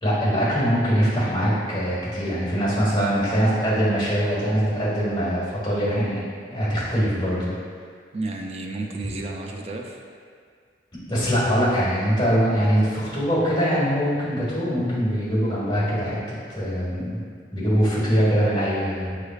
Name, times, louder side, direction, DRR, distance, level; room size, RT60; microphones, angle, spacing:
voice 1, 0.0-6.2 6.5-7.5 11.1-16.2 16.5-17.2 17.5-19.2, equal, 25° left, -9 dB, 1.5 m, -22 dB
voice 2, 8.1-10.0 17.6-17.7, right 2 dB, 35° right, 1 dB, 0.4 m, -32 dB
6.9 x 3.2 x 2.4 m, 2.1 s
head